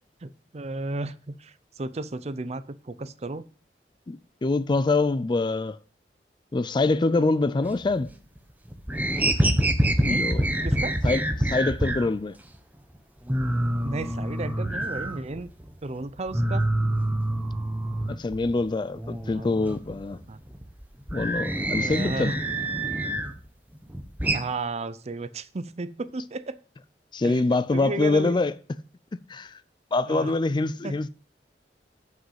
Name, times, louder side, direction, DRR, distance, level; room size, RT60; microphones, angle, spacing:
voice 1, 0.2-3.4 10.0-10.3 10.6-10.9 13.8-15.5 15.8-16.7 19.3-19.5 20.3-20.4 21.8-22.4 24.3-26.6 27.2-27.4 27.7-28.4 30.1-30.3 30.8-31.0, right 2 dB, 40° right, 0.6 m, -33 dB
voice 2, 4.1-5.8 6.5-8.1 10.0-10.5 11.0-12.4 18.1-20.2 21.1-22.3 27.1-28.5 29.3-29.6 29.9-31.1, left 3 dB, 25° left, 0.4 m, -25 dB
sound 1, 7.6-8.4 8.7-12.1 12.5-12.6 12.9-13.0 13.2-15.7 16.0-18.6 18.9-23.4 23.7-24.4, right 1 dB, 10° right, 0.9 m, -26 dB
7.6 x 5.9 x 5.7 m
head